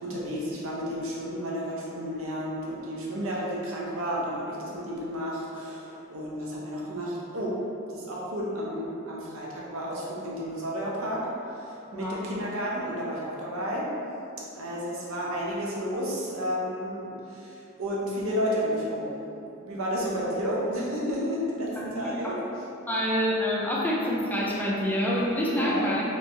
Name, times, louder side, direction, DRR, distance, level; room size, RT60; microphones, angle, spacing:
voice 1, 0.0-7.6 7.9-11.3 11.5-13.9 14.5-19.1 19.6-22.6 25.4-25.9, equal, 80° right, -5 dB, 0.7 m, -32 dB
voice 2, 11.9-12.3 21.8-21.9 22.2-22.3 22.9-26.0, equal, 10° left, -6 dB, 0.4 m, -27 dB
3.3 x 3.1 x 2.6 m, 2.8 s
head